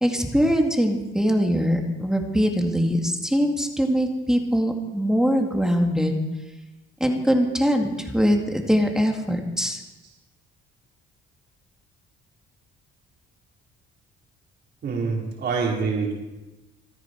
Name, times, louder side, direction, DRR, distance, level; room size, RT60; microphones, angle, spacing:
voice 1, 0.0-6.2 7.0-9.8, equal, 5° right, 2 dB, 2.3 m, -22 dB
voice 2, 14.8-16.1, right 5 dB, 55° right, -2 dB, 4.6 m, -25 dB
27.5 x 9.8 x 4.7 m, 1.1 s
cardioid pair, 105°, 21 cm